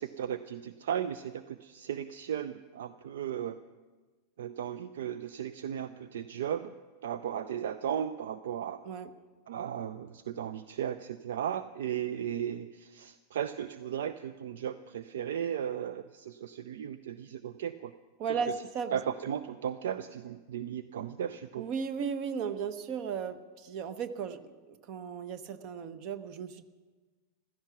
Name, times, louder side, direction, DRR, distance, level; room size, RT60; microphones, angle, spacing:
voice 1, 0.0-3.6 4.4-6.7 7.0-8.9 9.5-17.9 18.9-21.7, right 9 dB, 60° right, 13 dB, 0.5 m, -36 dB
voice 2, 18.2-19.0 21.6-24.4 24.7-26.6, right 6 dB, 40° right, 12 dB, 1.0 m, -35 dB
15.5 x 13.5 x 6.0 m, 1.3 s
figure-of-eight pair, 90°, 0 cm